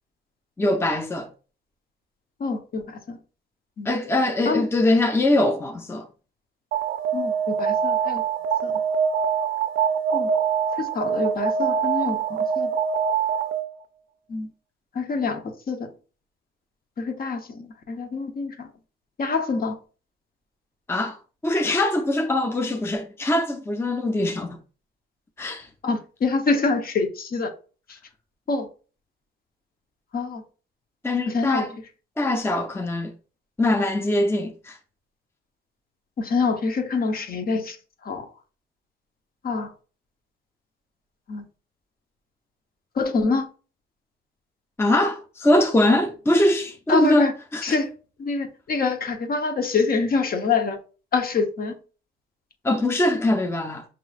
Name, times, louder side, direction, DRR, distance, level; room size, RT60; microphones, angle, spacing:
voice 1, 0.6-1.3 3.8-6.1 20.9-21.2 21.4-24.6 25.4-25.7 31.0-31.7 32.2-33.1 33.6-34.8 44.8-47.8 52.6-53.9, left 1 dB, 10° left, 0.5 m, -22 dB
voice 2, 2.4-3.2 3.8-3.9 4.5-4.6 7.1-8.2 8.6-8.7 10.1-10.3 10.8-12.7 14.3-14.5 14.9-15.9 17.0-18.7 19.2-19.7 25.8-27.5 28.5-28.7 30.1-30.4 31.3-31.7 36.2-37.8 38.0-38.3 39.4-39.7 41.3-41.5 43.0-43.5 46.9-47.3 47.6-47.9 48.2-50.8 51.1-51.7, left 4 dB, 50° left, 0.9 m, -25 dB
Alarm, 6.7-13.8, right 7 dB, 75° right, 0.5 m, -24 dB
6.2 x 3.0 x 2.4 m
cardioid pair, 90°, 20 cm